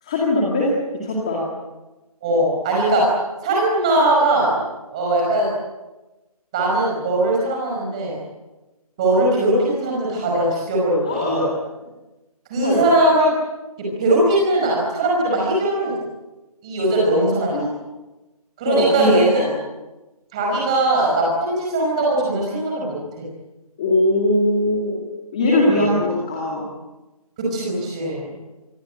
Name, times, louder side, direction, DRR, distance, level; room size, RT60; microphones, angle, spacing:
voice 1, 0.0-1.4 2.9-3.0 11.0-11.4 12.6-12.9 17.5-17.7 18.7-19.5 23.8-25.1 25.3-26.6, left 1 dB, 10° left, -4 dB, 2.3 m, -20 dB
voice 2, 2.2-3.0 3.4-4.6 4.9-5.5 6.5-8.2 9.0-11.5 12.5-13.3 14.0-15.9 16.6-17.6 18.6-19.4 20.3-23.3 25.5-25.9 27.4-28.3, right 1 dB, 10° right, -2 dB, 5.4 m, -20 dB
27.0 x 22.0 x 9.0 m, 1.1 s
figure-of-eight pair, 180°, 20 cm